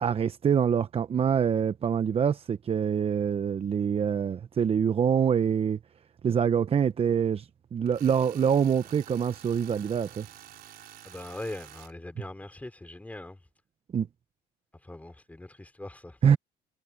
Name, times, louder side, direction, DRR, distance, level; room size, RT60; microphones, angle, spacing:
voice 1, 0.0-5.8 6.2-10.3 13.9-14.1 16.2-16.4, right 7 dB, 35° right, 0.8 m, -25 dB
Tools, 7.9-11.9, right 12 dB, 65° right, 4.2 m, -49 dB
voice 2, 11.0-13.4 14.7-16.2, left 1 dB, 10° left, 3.4 m, -41 dB
cardioid pair, 110°, 17 cm